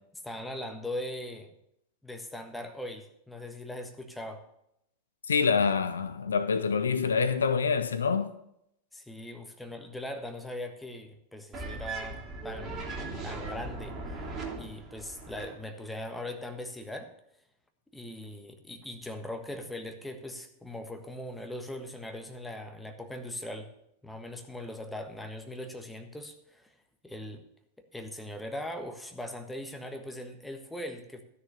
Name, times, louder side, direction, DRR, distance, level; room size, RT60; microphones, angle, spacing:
voice 1, 0.2-1.5 2.0-4.4 8.9-12.8 13.2-14.2 14.5-17.1 17.9-23.7 24.0-26.8 27.0-27.4 27.9-31.2, left 1 dB, 5° left, 1.4 m, -40 dB
voice 2, 5.3-8.3, left 5 dB, 70° left, 0.6 m, -26 dB
sound 1, 11.5-15.5, right 3 dB, 25° right, 2.9 m, -38 dB
13.0 x 6.7 x 6.8 m
figure-of-eight pair, 90°, 0 cm